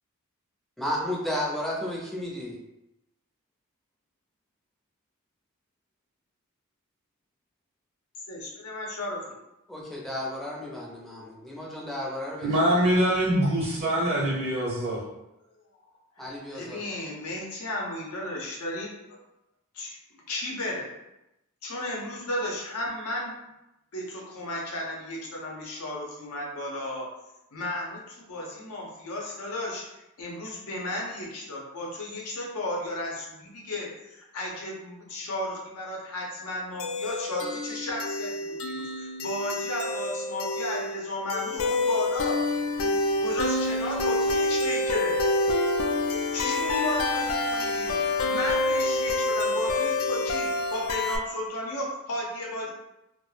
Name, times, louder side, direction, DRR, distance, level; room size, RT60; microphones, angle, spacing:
voice 1, 0.8-2.6 9.7-12.8 16.2-16.9, left 1 dB, ahead, -4 dB, 0.4 m, -33 dB
voice 2, 8.3-9.4 12.4-12.5 16.2-19.2 19.7-20.0 20.3-20.9 21.6-23.3 23.9-27.1 27.5-29.8 30.2-42.3 42.8-45.1 46.3-48.0 48.3-52.7, left 1 dB, 85° left, -2 dB, 0.7 m, -34 dB
voice 3, 12.4-15.0, right 1 dB, 50° right, -6 dB, 0.6 m, -24 dB
sound 1, 36.8-51.2, left 2 dB, 65° left, 0.3 m, -27 dB
2.2 x 2.0 x 3.2 m, 0.91 s
head